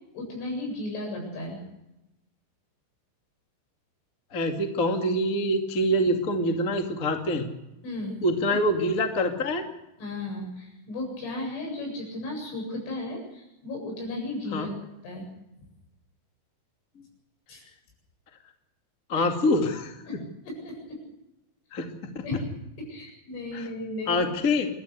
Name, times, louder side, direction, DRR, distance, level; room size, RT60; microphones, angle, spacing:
voice 1, 0.2-1.6 7.8-8.2 10.0-14.8 15.0-15.3 17.5-17.6 19.2-19.3 20.1-20.2 20.5-21.0 22.2-22.4 22.8-24.2, left 2 dB, 80° left, 0 dB, 10.5 m, -35 dB
voice 2, 4.3-7.4 8.2-9.6 14.5-14.7 19.1-19.9 21.7-22.2 23.5-23.7 24.1-24.7, left 1 dB, 30° left, 4 dB, 1.5 m, -25 dB
28.0 x 13.0 x 8.2 m, 0.92 s
omnidirectional pair, 5.6 m